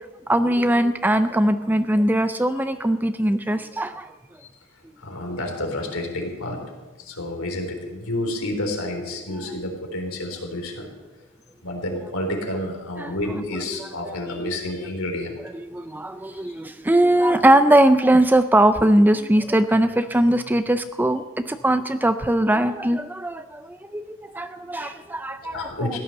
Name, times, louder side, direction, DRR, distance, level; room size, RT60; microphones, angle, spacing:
voice 1, 0.3-4.1 13.0-13.1 13.7-13.8 14.4-14.5 15.5-26.0, right 1 dB, 10° right, 10 dB, 0.4 m, -20 dB
voice 2, 5.0-6.6 7.0-10.9 11.6-15.4 16.3-16.6 24.7-24.9 25.4-26.0, left 1 dB, 70° left, 1 dB, 3.7 m, -30 dB
16.0 x 11.5 x 6.6 m, 1.2 s
head